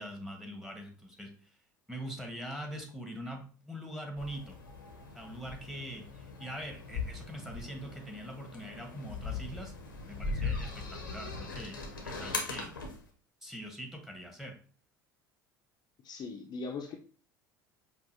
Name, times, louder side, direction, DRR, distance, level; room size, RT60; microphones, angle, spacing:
voice 1, 0.0-1.6 1.9-4.6 5.1-9.7 10.0-12.7 13.4-14.5, equal, 5° right, 3 dB, 1.2 m, -43 dB
sound 1, 4.2-13.0, left 4 dB, 90° left, 0.8 m, -40 dB
voice 2, 16.0-16.9, left 4 dB, 40° left, 2 dB, 0.6 m, -39 dB
5.4 x 2.6 x 2.6 m, 0.41 s
figure-of-eight pair, 70°, 11 cm